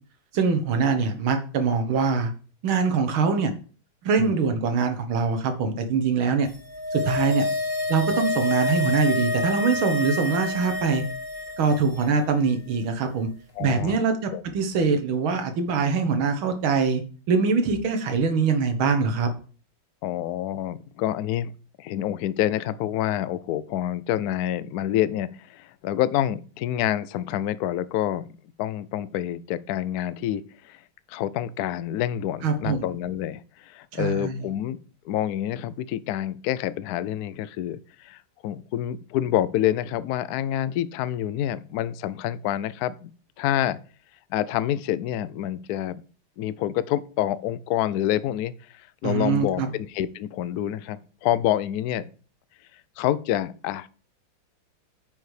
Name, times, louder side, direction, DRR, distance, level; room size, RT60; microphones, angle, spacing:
voice 1, 0.3-2.3 2.6-3.5 4.0-6.5 6.9-7.5 7.9-11.0 11.6-13.3 13.6-17.0 17.3-19.3 32.4-32.8 33.9-34.4 49.0-49.7, right 5 dB, 80° right, 7 dB, 2.1 m, -23 dB
sound 1, 6.5-12.0 12.3-12.4, left 2 dB, 25° right, 2.4 m, -28 dB
voice 2, 13.6-14.0 14.3-14.4 20.0-21.5 21.8-28.3 28.6-30.8 31.1-34.8 35.0-43.1 43.4-43.8 44.3-46.0 46.4-52.1 53.0-53.9, left 12 dB, 75° left, 16 dB, 0.8 m, -27 dB
9.1 x 5.4 x 4.9 m, 0.40 s
omnidirectional pair, 2.2 m